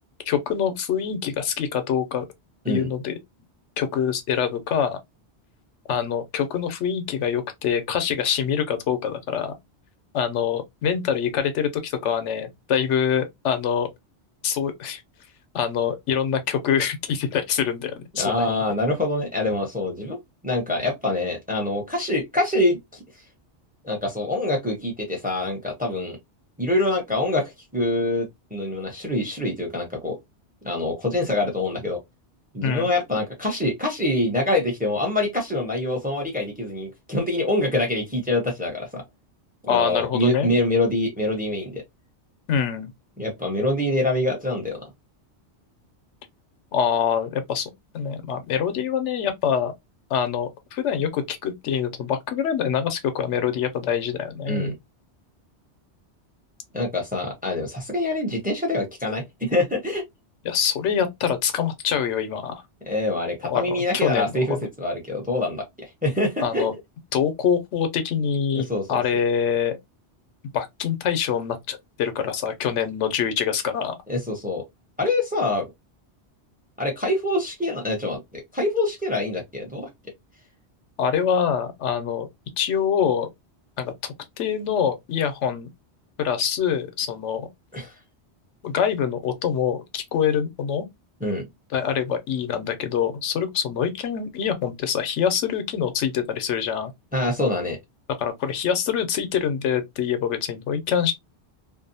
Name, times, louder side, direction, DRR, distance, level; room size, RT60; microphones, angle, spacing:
voice 1, 0.3-2.3 2.7-3.1 3.8-5.0 5.9-9.5 10.1-13.9 14.4-15.0 15.5-18.6 32.6-32.9 39.7-40.5 42.5-42.9 46.7-49.7 50.1-54.7 60.4-62.6 63.4-64.6 66.4-66.7 67.1-69.8 70.5-73.9 81.0-82.3 82.6-83.3 83.8-85.7 86.2-87.5 88.6-90.8 91.7-96.9 98.2-101.1, left 8 dB, 85° left, 0.9 m, -25 dB
voice 2, 18.1-20.2 20.4-23.0 23.8-26.2 26.6-30.2 30.6-32.0 32.5-39.0 39.7-41.8 43.2-44.9 54.5-54.7 56.7-60.0 62.9-66.6 68.5-69.0 74.1-74.6 75.0-75.7 76.8-79.9 87.7-87.9 91.2-91.4 97.1-97.8, left 2 dB, 10° right, 0.6 m, -25 dB
2.6 x 2.0 x 2.6 m
omnidirectional pair, 1.2 m